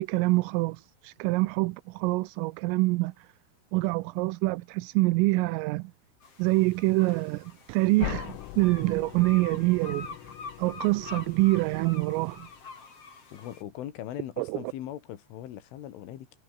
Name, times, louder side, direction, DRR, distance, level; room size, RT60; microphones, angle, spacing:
voice 1, 0.0-3.3 3.7-5.9 6.4-10.1 10.6-12.5 14.4-14.6, right 22 dB, 85° right, 3.3 m, -26 dB
sound 1, 6.2-13.6, left 4 dB, 30° left, 4.4 m, -45 dB
sound 2, 8.0-12.8, left 25 dB, 85° left, 2.7 m, -41 dB
voice 2, 13.3-16.3, left 12 dB, 70° left, 4.5 m, -40 dB
omnidirectional pair, 6.0 m